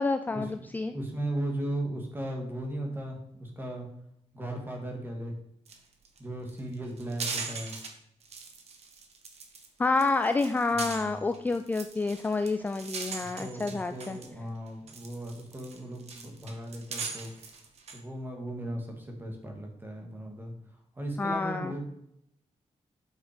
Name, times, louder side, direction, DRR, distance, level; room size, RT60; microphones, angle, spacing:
voice 1, 0.0-0.9 9.8-14.2 21.2-21.7, left 3 dB, 15° left, 9 dB, 0.4 m, -28 dB
voice 2, 0.9-3.9 4.3-5.4 6.2-7.8 10.7-11.3 13.2-17.3 17.9-20.5 20.9-21.8, right 1 dB, 20° right, 1 dB, 2.1 m, -37 dB
sound 1, 5.7-5.8 6.0-6.2 6.5-7.9 8.2-9.7 10.0-14.3 14.7-18.0, right 5 dB, 65° right, 1.6 m, -40 dB
8.8 x 6.1 x 5.2 m, 0.76 s
wide cardioid pair, 180°, 12 cm